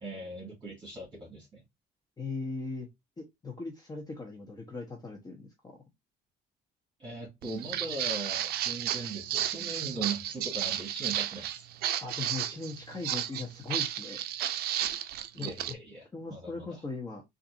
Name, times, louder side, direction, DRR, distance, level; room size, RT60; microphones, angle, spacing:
voice 1, 0.0-1.6 7.0-11.6 15.3-16.8, right 3 dB, 30° right, 2.0 m, -40 dB
voice 2, 2.2-2.9 3.2-5.8 12.0-14.2 15.3-15.5 16.1-17.2, left 3 dB, 20° left, 0.9 m, -39 dB
Walk footsteps, 7.4-15.7, right 11 dB, 65° right, 0.4 m, -33 dB
4.0 x 2.6 x 2.6 m
cardioid pair, 110°, 17 cm